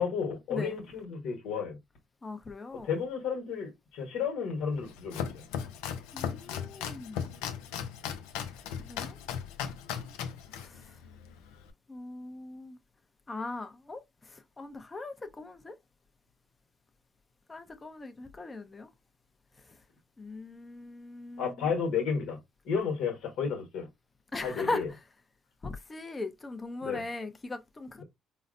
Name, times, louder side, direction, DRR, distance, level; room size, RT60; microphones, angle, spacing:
voice 1, 0.0-1.8 2.8-5.2 21.4-22.4 22.6-23.9 24.4-24.9 26.8-27.0, left 6 dB, 70° left, 1.2 m, -32 dB
voice 2, 2.2-2.9 6.1-7.2 8.8-9.2 10.5-10.8 11.9-12.8 13.3-15.7 17.5-18.9 20.2-21.7 24.3-24.8 25.6-28.0, left 2 dB, 25° left, 0.5 m, -39 dB
Domestic sounds home sounds, 4.7-11.7, left 8 dB, 90° left, 0.4 m, -37 dB
3.9 x 2.1 x 2.5 m
supercardioid pair, 75°, 0 cm